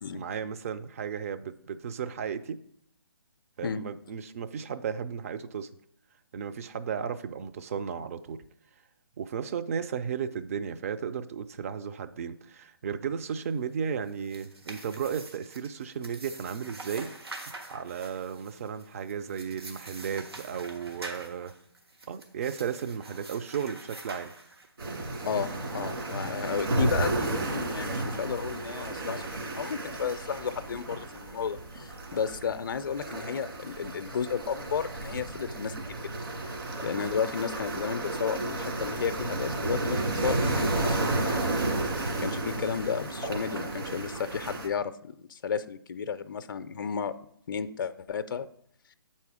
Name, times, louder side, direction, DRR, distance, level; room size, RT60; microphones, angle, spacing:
voice 1, 0.1-2.6 3.6-5.7 6.3-8.4 9.2-17.1 17.4-21.5 22.1-24.3, right 7 dB, 35° right, 10 dB, 0.4 m, -34 dB
sound 1, 14.0-24.9, right 3 dB, 80° right, 1.5 m, -45 dB
sound 2, 24.8-44.7, right 2 dB, 60° right, 2.1 m, -32 dB
voice 2, 25.3-36.1 36.8-41.4 42.2-44.9 45.3-47.2 47.5-48.5, left 7 dB, 55° left, 12 dB, 0.4 m, -33 dB
8.2 x 4.3 x 4.8 m, 0.68 s
figure-of-eight pair, 140°, 13 cm